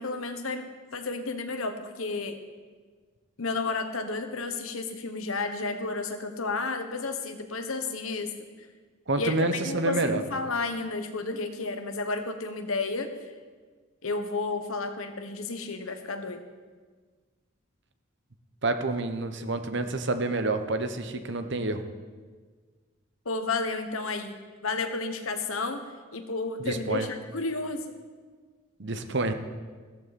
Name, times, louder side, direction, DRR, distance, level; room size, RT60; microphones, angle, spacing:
voice 1, 0.0-2.4 3.4-8.3 9.2-13.1 14.0-16.4 23.2-25.8 26.1-28.0, left 3 dB, 90° left, 7 dB, 1.3 m, -32 dB
voice 2, 9.1-10.2 18.6-21.8 26.6-27.1 28.8-29.3, right 2 dB, 60° right, 8 dB, 1.0 m, -28 dB
15.5 x 13.5 x 4.3 m, 1.5 s
head